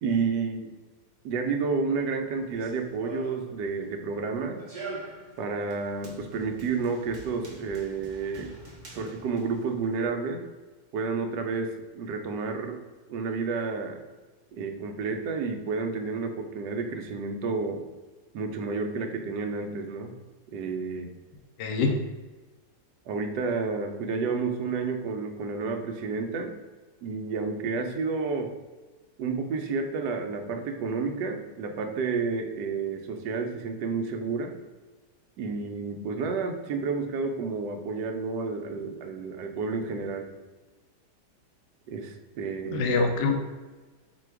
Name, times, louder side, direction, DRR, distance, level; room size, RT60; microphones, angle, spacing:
voice 1, 0.0-0.7 1.2-4.6 5.4-8.5 8.9-10.4 10.9-12.8 13.1-14.0 14.5-17.8 18.3-20.1 20.5-21.1 23.1-26.6 27.0-28.5 29.2-34.6 35.4-40.3 41.9-42.8, right 4 dB, 75° right, 5 dB, 1.2 m, -30 dB
Run, 2.4-10.1, right 3 dB, 35° right, 0.8 m, -45 dB
voice 2, 21.6-22.0 42.7-43.4, left 3 dB, 80° left, 3 dB, 1.3 m, -25 dB
5.1 x 2.3 x 4.5 m, 1.3 s
omnidirectional pair, 1.9 m